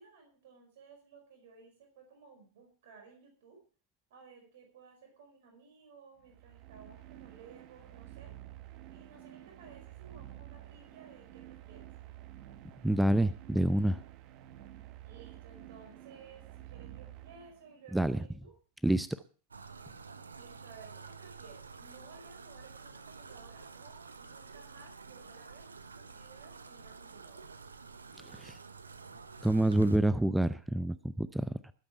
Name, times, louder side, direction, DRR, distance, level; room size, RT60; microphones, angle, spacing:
voice 1, 0.0-3.6 4.1-8.3 8.9-11.9 15.0-18.5 20.3-25.7 25.9-27.5, right 5 dB, 55° right, 3 dB, 4.9 m, -56 dB
sound 1, 6.2-17.9, right 14 dB, 40° right, 1.2 m, -50 dB
voice 2, 12.8-14.0 17.9-18.2 18.8-19.1 28.2-28.6 29.4-31.7, right 1 dB, 5° right, 15 dB, 0.6 m, -28 dB
sound 2, 19.5-30.0, right 5 dB, 75° right, 1.1 m, -50 dB
20.5 x 8.8 x 4.5 m, 0.39 s
figure-of-eight pair, 90°, 0 cm